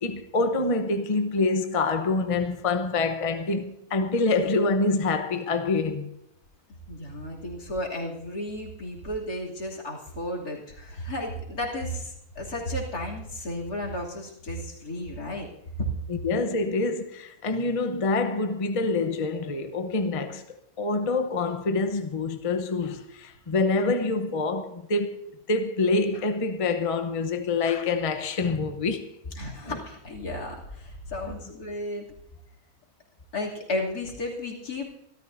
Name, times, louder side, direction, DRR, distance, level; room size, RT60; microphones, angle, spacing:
voice 1, 0.0-6.1 16.1-20.4 20.8-29.1 29.6-29.8 31.2-31.4, left 3 dB, 30° left, 0.8 m, -26 dB
voice 2, 6.9-15.5 15.8-15.9 29.4-32.1 33.3-34.9, left 1 dB, 80° left, 3.4 m, -33 dB
26.0 x 13.0 x 2.7 m
omnidirectional pair, 1.6 m